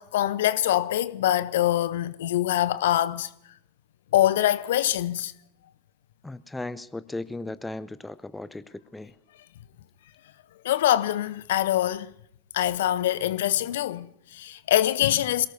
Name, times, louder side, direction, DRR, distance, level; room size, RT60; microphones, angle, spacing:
voice 1, 0.0-3.3 4.1-5.3 10.6-12.1 12.5-15.5, left 12 dB, 55° left, 0.7 m, -24 dB
voice 2, 6.2-9.1, left 2 dB, 5° left, 0.6 m, -36 dB
27.5 x 18.0 x 2.7 m
figure-of-eight pair, 90°, 0 cm